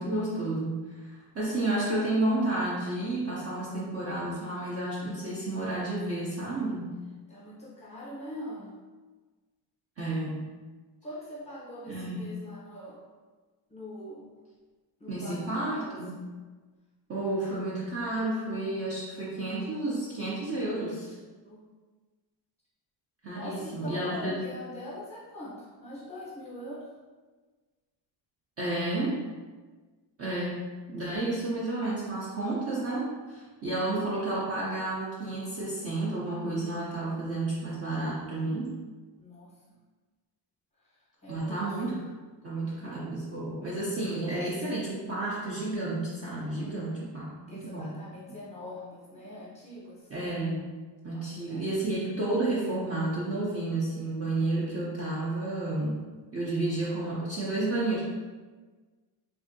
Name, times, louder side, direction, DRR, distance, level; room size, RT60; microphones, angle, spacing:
voice 1, 0.0-7.0 10.0-10.4 11.9-12.2 15.1-16.3 17.1-21.2 23.2-24.5 28.6-29.2 30.2-38.7 41.3-42.0 42.4-48.0 48.3-48.4 50.1-50.7 51.0-56.0 56.3-58.0, right 2 dB, 35° right, -7 dB, 0.4 m, -31 dB
voice 2, 7.3-8.7 11.0-13.0 13.7-14.3 15.0-16.2 21.4-21.6 23.3-26.9 39.2-39.5 41.2-41.8 42.7-42.9 46.5-47.0 47.5-50.0 51.1-51.7 54.2-54.9, left 1 dB, 15° left, -8 dB, 0.7 m, -43 dB
3.3 x 2.6 x 2.5 m, 1.3 s
cardioid pair, 175°, 48 cm